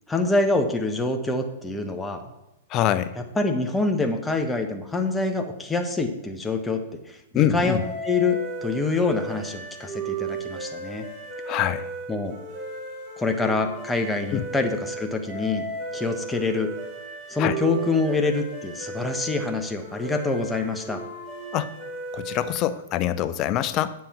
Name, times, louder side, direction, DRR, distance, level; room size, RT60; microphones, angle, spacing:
voice 1, 0.1-2.2 3.4-11.1 12.1-12.4 13.2-15.6 15.9-16.7 17.3-21.0, left 3 dB, 10° left, 5 dB, 1.1 m, -26 dB
voice 2, 2.7-3.2 7.3-7.8 11.5-11.9 14.3-14.4 17.4-17.5 21.5-21.7 22.1-23.9, left 11 dB, 35° left, 13 dB, 0.6 m, -24 dB
sound 1, 7.8-22.8, right 3 dB, 30° right, 3.2 m, -35 dB
8.9 x 7.6 x 4.3 m, 0.93 s
hypercardioid pair, 115°, 0 cm